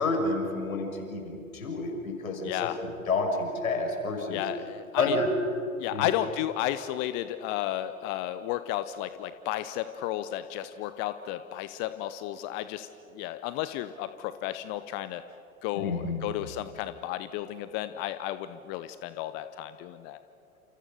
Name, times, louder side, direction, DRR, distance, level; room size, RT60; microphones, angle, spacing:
voice 1, 0.0-2.7 3.1-4.4 5.0-5.3 5.9-6.1 15.7-16.4, left 3 dB, 65° left, 3 dB, 6.2 m, -29 dB
voice 2, 2.4-2.8 4.3-5.2 5.8-12.9 13.1-15.2 15.6-20.2, left 13 dB, 25° left, 12 dB, 0.7 m, -33 dB
29.5 x 28.0 x 6.7 m, 2.7 s
figure-of-eight pair, 105°, 44 cm